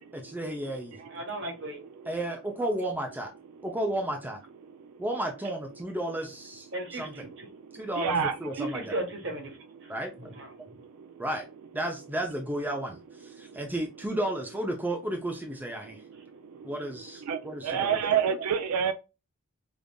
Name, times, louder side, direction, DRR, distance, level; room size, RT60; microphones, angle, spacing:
voice 1, 0.1-1.0 2.1-3.3 3.6-4.4 5.0-6.7 6.9-7.1 7.7-8.1 8.4-8.9 9.9-10.1 11.2-11.4 11.7-16.0 16.6-18.0, right 1 dB, 10° right, 0.4 m, -33 dB
voice 2, 1.0-1.8 2.0-2.1 6.7-7.5 8.6-9.9 10.2-10.5, right 2 dB, 55° right, 1.3 m, -36 dB
voice 3, 4.7-5.0 7.4-8.4 9.9-10.0 10.6-11.2 13.3-13.6 16.0-16.7 17.3-18.9, right 7 dB, 80° right, 0.4 m, -30 dB
5.1 x 2.4 x 2.2 m
head